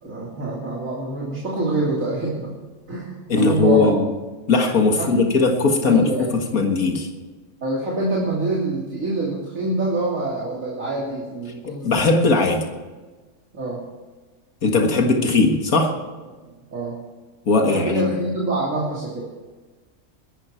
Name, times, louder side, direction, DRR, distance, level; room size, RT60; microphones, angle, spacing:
voice 1, 0.0-2.5 2.9-3.9 5.0-5.3 5.8-6.3 7.6-12.0 13.5-13.8 16.7-17.0 17.7-19.3, right 2 dB, 65° right, -4 dB, 3.4 m, -26 dB
voice 2, 3.3-4.1 4.5-7.1 11.6-12.7 14.6-15.9 17.5-18.1, left 3 dB, 80° left, 3 dB, 2.1 m, -19 dB
21.0 x 12.0 x 4.5 m, 1.3 s
omnidirectional pair, 1.5 m